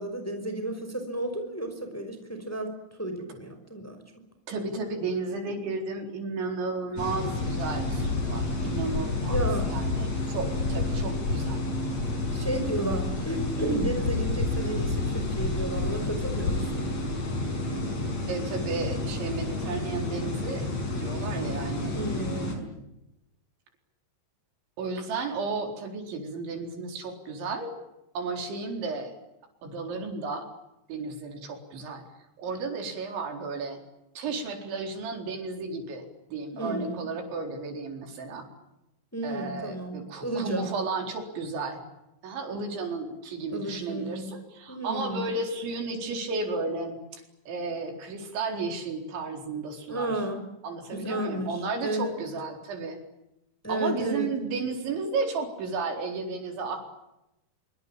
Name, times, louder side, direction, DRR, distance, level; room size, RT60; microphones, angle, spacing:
voice 1, 0.0-2.7 3.0-4.0 9.3-9.8 12.3-16.9 21.9-22.6 36.5-37.1 39.1-40.7 43.5-44.3 44.7-45.2 49.9-50.4 50.9-51.5 51.8-52.1 53.6-54.3, right 1 dB, 5° left, 6 dB, 4.6 m, -32 dB
voice 2, 4.5-9.4 9.6-11.6 18.3-22.8 24.8-27.7 28.1-29.1 29.6-30.5 30.9-32.0 32.4-33.8 34.2-38.5 39.2-41.8 42.2-50.2 50.6-53.0 53.7-56.9, right 3 dB, 80° right, 4 dB, 6.6 m, -33 dB
sound 1, 7.0-22.6, left 2 dB, 35° left, 6.6 m, -29 dB
25.5 x 24.5 x 8.8 m, 0.89 s
omnidirectional pair, 5.2 m